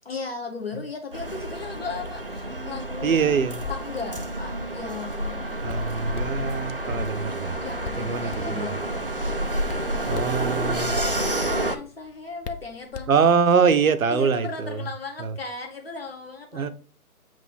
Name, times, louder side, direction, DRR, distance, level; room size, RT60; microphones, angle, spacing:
voice 1, 0.0-3.2 3.7-5.6 7.6-8.8 10.0-13.1 14.1-16.7, left 4 dB, 40° left, 1.0 m, -36 dB
sound 1, 1.1-11.8, right 1 dB, 40° right, 0.4 m, -29 dB
voice 2, 3.0-3.6 5.6-7.6 8.0-8.7 10.1-11.0 13.1-14.8 15.2-15.3 16.5-16.7, right 6 dB, 65° right, 0.8 m, -23 dB
Hands, 3.5-13.6, left 5 dB, 80° left, 0.9 m, -43 dB
7.6 x 2.5 x 5.6 m
hypercardioid pair, 170°, 45 cm